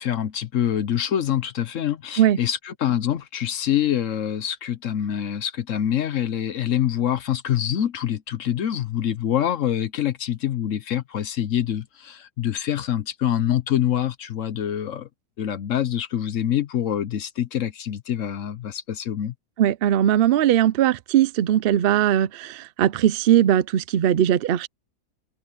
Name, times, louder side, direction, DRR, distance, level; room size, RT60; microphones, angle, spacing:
voice 1, 0.0-15.1 15.4-19.3, left 10 dB, 60° left, 1.0 m, -25 dB
voice 2, 19.6-24.7, right 11 dB, 80° right, 0.5 m, -19 dB
open air
omnidirectional pair, 1.7 m